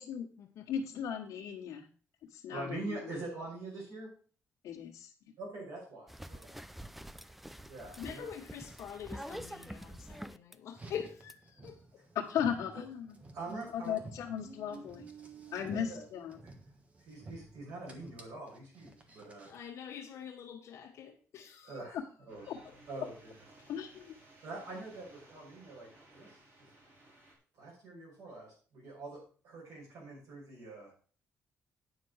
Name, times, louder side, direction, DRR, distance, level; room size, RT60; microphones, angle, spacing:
voice 1, 0.7-1.9 2.3-3.2 4.6-4.9 12.1-13.2 13.7-15.1 15.5-16.4 22.5-22.6 23.7-24.2, left 8 dB, 85° left, -1 dB, 1.5 m, -36 dB
voice 2, 2.5-4.1 5.4-6.5 7.6-8.3 12.7-12.8 13.3-14.0 15.6-16.0 16.4-16.5 17.0-19.5 21.6-22.0 22.3-22.5 22.9-23.1 24.4-26.4 27.5-30.9, right 2 dB, 75° right, -4 dB, 5.5 m, -44 dB
sound 1, 6.1-10.5 11.3-11.4, equal, 5° right, 0.3 m, -46 dB
voice 3, 8.0-12.0 19.5-21.7, left 8 dB, 60° left, 2 dB, 1.2 m, -45 dB
Car, 10.7-19.7, right 3 dB, 25° right, 1.3 m, -52 dB
sound 2, 22.3-27.3, right 1 dB, 40° right, 4.2 m, -59 dB
9.5 x 5.8 x 6.4 m, 0.41 s
cardioid pair, 180°, 5 cm